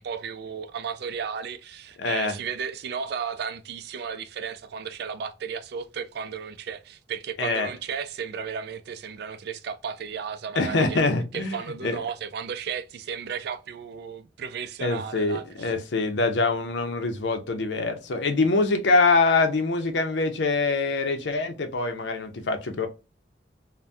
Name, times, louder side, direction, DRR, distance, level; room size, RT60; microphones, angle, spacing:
voice 1, 0.0-11.0 11.3-15.7, right 6 dB, 65° right, 0.4 m, -34 dB
voice 2, 2.0-2.4 7.4-7.7 10.6-12.0 14.8-22.9, left 3 dB, 85° left, 0.6 m, -24 dB
3.3 x 2.2 x 2.6 m
head